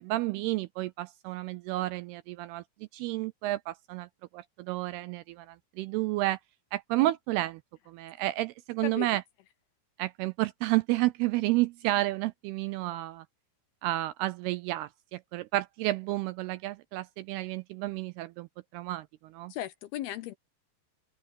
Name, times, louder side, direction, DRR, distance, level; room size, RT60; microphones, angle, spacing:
voice 1, 0.0-2.6 2.9-4.1 4.3-6.4 6.7-7.6 7.9-9.2 10.0-13.3 13.8-19.5, right 17 dB, 85° right, 2.3 m, -31 dB
voice 2, 8.8-9.2 19.5-20.4, left 13 dB, 75° left, 2.4 m, -36 dB
omnidirectional pair, 5.0 m